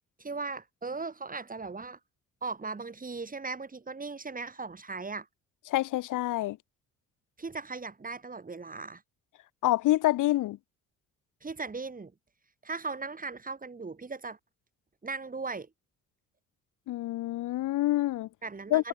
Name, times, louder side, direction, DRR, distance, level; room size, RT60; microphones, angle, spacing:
voice 1, 0.2-2.0 2.4-5.3 7.4-9.0 11.4-12.1 12.6-14.4 15.0-15.7 18.4-18.9, right 4 dB, 30° right, 6.9 m, -38 dB
voice 2, 5.7-6.6 9.6-10.6 16.9-18.3 18.7-18.9, left 16 dB, 85° left, 2.1 m, -27 dB
cardioid pair, 90°, 30 cm